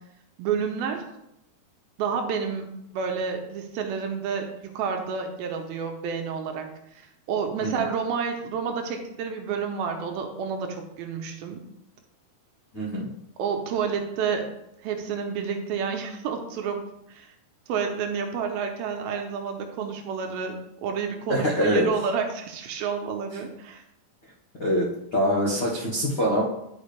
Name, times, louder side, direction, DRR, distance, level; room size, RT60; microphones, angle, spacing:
voice 1, 0.4-1.0 2.0-4.5 4.7-6.7 6.9-11.6 13.4-14.5 14.8-16.8 17.1-17.3 17.7-23.8, right 6 dB, 80° right, 4 dB, 2.5 m, -29 dB
voice 2, 12.7-13.1 21.3-21.9 24.6-26.4, equal, 85° left, -6 dB, 0.9 m, -24 dB
10.5 x 4.9 x 3.3 m, 0.80 s
omnidirectional pair, 4.6 m